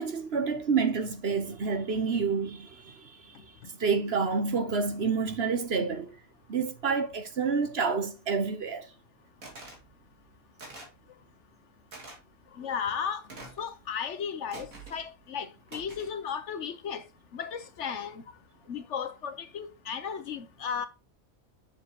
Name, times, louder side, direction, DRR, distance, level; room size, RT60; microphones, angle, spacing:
voice 1, 0.0-3.3 3.8-6.2 6.5-8.9, right 5 dB, 50° right, 1.1 m, -28 dB
sound 1, 9.4-9.8 10.6-11.0 11.9-12.2 13.3-13.7 14.5-15.0 15.7-16.2, right 2 dB, 75° right, 2.8 m, -45 dB
voice 2, 12.5-13.2 13.6-17.1 17.3-18.2 18.7-20.9, left 7 dB, 60° left, 1.0 m, -35 dB
7.2 x 7.0 x 2.8 m
omnidirectional pair, 1.5 m